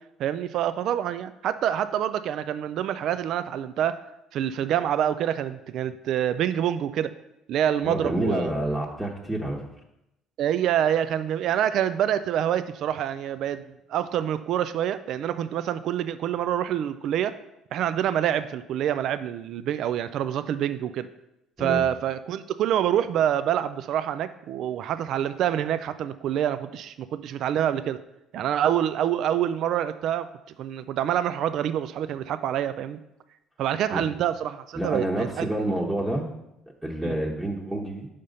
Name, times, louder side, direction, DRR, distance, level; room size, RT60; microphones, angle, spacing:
voice 1, 0.2-4.0 4.3-7.1 7.5-8.6 10.4-13.6 13.9-17.4 17.7-21.1 21.6-28.0 28.3-30.3 30.6-33.0 33.6-35.5 37.0-37.2, right 10 dB, 65° right, 13 dB, 0.3 m, -26 dB
voice 2, 7.8-9.6 21.6-21.8 33.9-34.0 34.7-36.3 36.8-38.1, right 1 dB, 10° right, -3 dB, 1.2 m, -28 dB
5.4 x 5.1 x 5.3 m, 0.86 s
hypercardioid pair, 65°, 0 cm